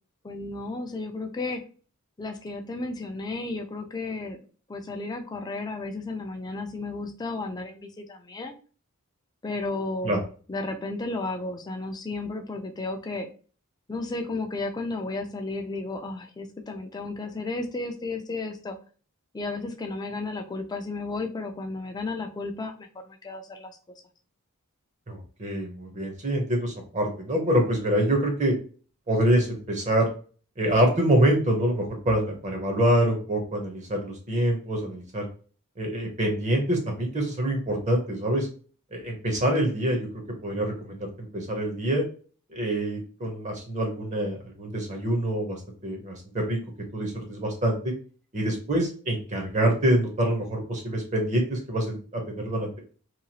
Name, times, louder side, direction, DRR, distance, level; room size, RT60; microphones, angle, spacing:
voice 1, 0.2-1.6 2.2-4.4 4.7-8.6 9.4-10.2 10.5-13.3 13.9-18.8 19.3-23.7, left 3 dB, 20° left, 4 dB, 0.3 m, -33 dB
voice 2, 25.1-28.5 29.1-30.1 30.6-35.3 35.8-38.5 38.9-40.1 40.4-42.0 42.5-46.6 46.9-47.9 48.3-52.8, right 1 dB, 30° right, 2 dB, 0.6 m, -25 dB
2.9 x 2.3 x 2.7 m, 0.40 s
head